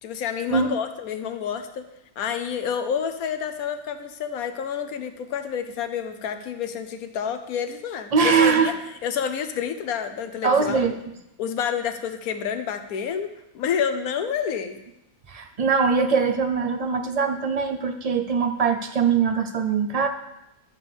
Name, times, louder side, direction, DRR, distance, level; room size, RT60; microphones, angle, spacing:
voice 1, 0.0-1.8 2.2-8.7 9.0-10.9 11.4-13.3 13.5-14.8, left 7 dB, 80° left, 8 dB, 1.2 m, -29 dB
voice 2, 8.1-8.7 10.4-10.9 15.3-20.1, right 5 dB, 50° right, 6 dB, 0.4 m, -22 dB
11.0 x 6.8 x 3.5 m, 0.86 s
omnidirectional pair, 1.5 m